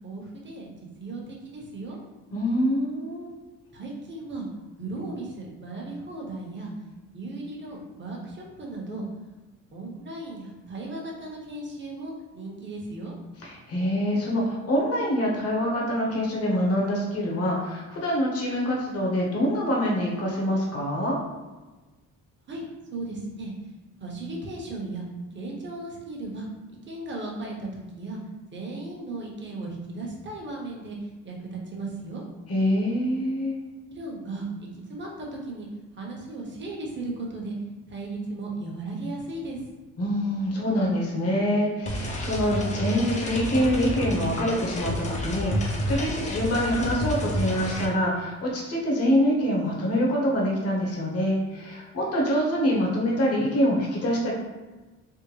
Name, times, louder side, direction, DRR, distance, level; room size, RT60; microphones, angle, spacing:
voice 1, 0.0-0.7 1.0-2.0 3.7-4.5 4.8-6.7 7.1-9.1 9.7-13.1 22.5-23.5 24.0-25.0 25.3-26.5 26.9-28.2 28.5-31.0 31.2-32.2 33.9-35.7 36.0-37.6 37.9-39.7, right 2 dB, 40° right, -2 dB, 0.9 m, -36 dB
voice 2, 2.3-3.3 13.4-21.2 32.5-33.5 40.0-54.3, equal, 50° left, -3 dB, 1.0 m, -25 dB
sound 1, 41.9-47.9, left 1 dB, 25° left, 0.5 m, -30 dB
3.5 x 2.1 x 3.0 m, 1.2 s
cardioid pair, 90°, 30 cm